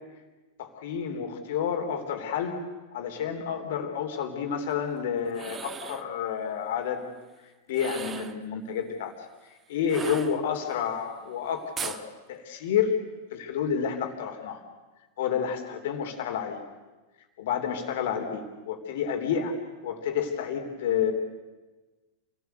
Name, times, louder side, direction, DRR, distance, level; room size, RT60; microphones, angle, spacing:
voice 1, 0.6-2.6 2.9-7.1 7.7-9.1 9.7-12.0 12.3-13.0 13.3-14.6 15.2-16.6 17.4-19.5 19.8-21.1, left 7 dB, 55° left, 5 dB, 3.2 m, -29 dB
sound 1, 5.3-6.1 7.7-8.4 9.9-10.8 11.8-12.0, right 6 dB, 20° right, 1.2 m, -38 dB
28.0 x 18.0 x 8.0 m, 1.2 s
figure-of-eight pair, 90°, 0 cm